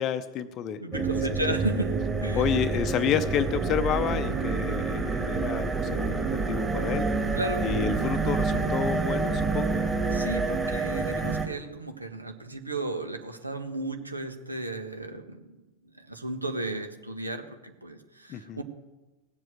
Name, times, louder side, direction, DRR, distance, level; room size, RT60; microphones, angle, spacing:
voice 1, 0.0-1.2 1.5-1.6 2.3-6.2 6.5-7.1 7.6-9.8 18.3-18.6, left 8 dB, 35° left, 11 dB, 0.7 m, -30 dB
voice 2, 0.8-2.5 7.3-7.6 10.1-15.5 16.0-18.6, right 2 dB, 85° right, 6 dB, 1.5 m, -34 dB
sound 1, 0.9-11.5, right 4 dB, 10° right, 2.3 m, -28 dB
sound 2, 1.5-11.2, left 4 dB, 45° right, 4.3 m, -47 dB
18.0 x 7.7 x 7.9 m, 1.1 s
figure-of-eight pair, 90°, 0 cm